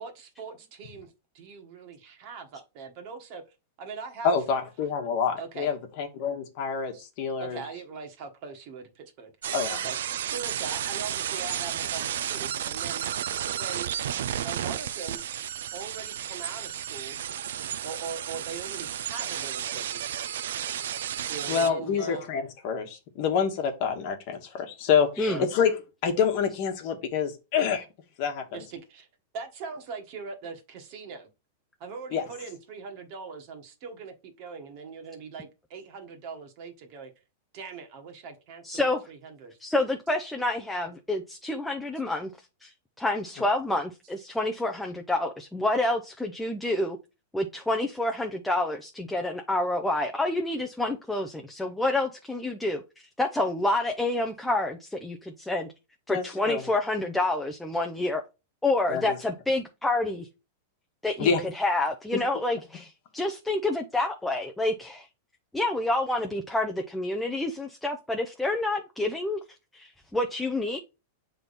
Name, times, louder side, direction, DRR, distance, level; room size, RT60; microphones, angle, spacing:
voice 1, 0.0-3.4 3.8-4.3 5.4-5.7 6.9-7.0 7.4-10.0 10.2-13.9 14.4-15.2 15.7-17.2 17.8-20.2 21.3-22.2 25.2-25.4 28.5-29.1 29.3-31.3 31.8-37.1 37.5-38.8 39.1-39.5, right 5 dB, 40° right, 1.3 m, -41 dB
voice 2, 4.2-7.6 9.5-9.8 21.5-27.8 28.2-28.6 32.1-32.2 56.1-56.6 58.9-59.2 61.2-61.4, left 6 dB, 40° left, 1.2 m, -27 dB
sound 1, 9.4-21.7, right 10 dB, 85° right, 0.5 m, -32 dB
voice 3, 38.6-39.0 39.6-42.3 42.6-42.7 43.0-47.0 47.3-52.8 53.2-55.7 56.1-58.2 58.6-60.3 61.0-65.1 65.5-69.4 69.7-70.8, left 2 dB, 5° left, 0.5 m, -28 dB
7.4 x 3.5 x 4.1 m
supercardioid pair, 170°, 0 cm